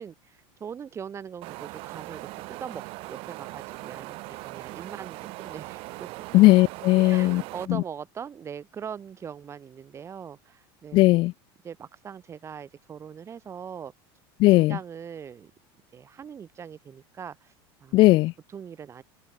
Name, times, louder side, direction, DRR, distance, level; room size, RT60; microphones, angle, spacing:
voice 1, 0.0-4.2 4.4-6.1 7.0-11.2 11.6-13.9 14.5-15.5 15.9-17.5 17.8-17.9 18.5-19.0, right 7 dB, 25° right, 5.1 m, -41 dB
Wind, 1.4-7.7, right 23 dB, 50° right, 1.8 m, -40 dB
voice 2, 6.3-7.4 7.7-7.8 10.9-11.3 14.4-14.8 17.9-18.3, left 19 dB, 45° left, 0.6 m, -17 dB
supercardioid pair, 150°, 12 cm